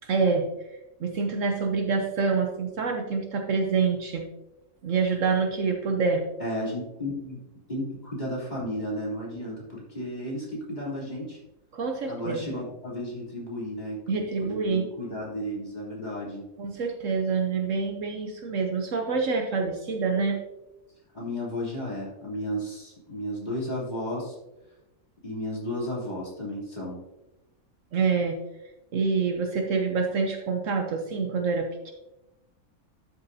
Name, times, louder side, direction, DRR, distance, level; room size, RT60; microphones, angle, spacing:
voice 1, 0.1-0.5 1.0-4.2 4.8-6.3 11.7-12.5 14.1-14.9 16.6-20.4 27.9-28.4 28.9-31.9, right 4 dB, 60° right, 3 dB, 1.1 m, -26 dB
voice 2, 6.4-7.4 7.7-11.4 12.1-16.4 21.1-24.3 25.2-27.0, equal, 30° left, -6 dB, 3.2 m, -33 dB
12.0 x 6.8 x 2.7 m, 0.98 s
omnidirectional pair, 1.6 m